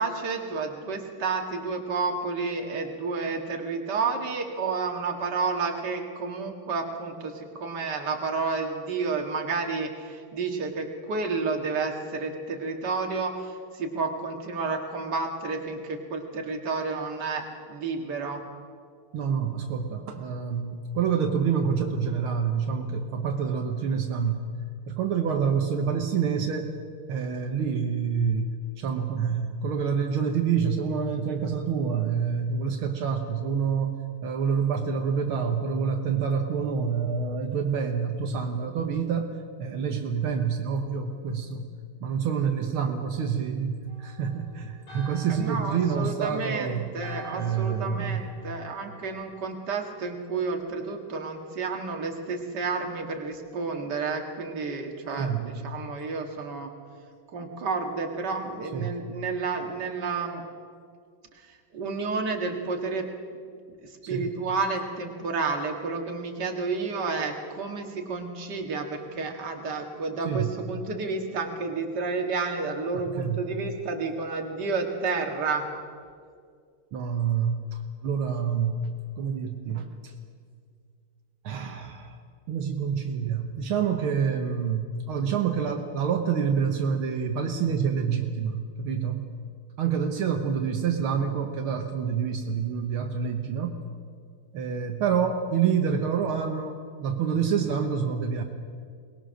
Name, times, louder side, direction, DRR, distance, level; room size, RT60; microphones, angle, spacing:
voice 1, 0.0-18.4 45.3-56.7 57.3-60.4 61.7-63.1 63.8-75.6, right 4 dB, 50° right, 3 dB, 2.3 m, -31 dB
voice 2, 19.1-24.4 24.9-26.7 27.1-28.5 28.8-39.3 39.6-41.7 42.0-46.9 47.3-48.3 55.2-55.4 58.7-59.0 64.1-64.3 70.2-70.5 73.1-73.4 76.9-78.8 79.2-80.1 81.4-82.2 82.5-89.3 89.8-93.7 94.5-98.4, right 6 dB, 75° right, 4 dB, 2.0 m, -27 dB
Church bell, 43.9-49.6, right 2 dB, 70° left, 4.0 m, -48 dB
22.5 x 19.5 x 6.4 m, 2.1 s
omnidirectional pair, 2.4 m